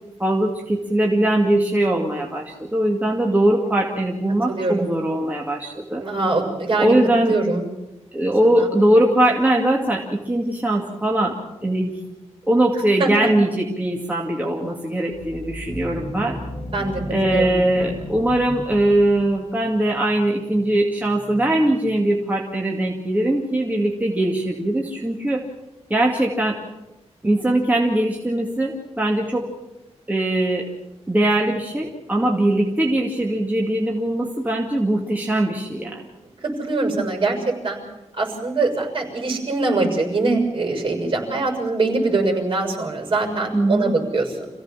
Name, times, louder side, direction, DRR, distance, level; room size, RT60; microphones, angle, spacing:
voice 1, 0.2-6.0 6.8-7.4 8.1-11.9 12.5-16.4 17.1-25.4 25.9-26.6 27.2-29.5 30.1-30.7 31.1-36.0 43.5-44.0, right 1 dB, 15° right, -1 dB, 2.3 m, -21 dB
voice 2, 4.5-4.9 6.0-7.0 7.2-7.6 8.5-8.7 13.0-13.3 16.7-17.0 17.3-17.9 36.4-37.8 38.2-44.5, right 3 dB, 45° right, 2 dB, 6.6 m, -23 dB
sound 1, 15.1-19.5, left 1 dB, 35° left, 4.1 m, -33 dB
27.0 x 16.5 x 7.4 m, 0.98 s
wide cardioid pair, 145°, 12 cm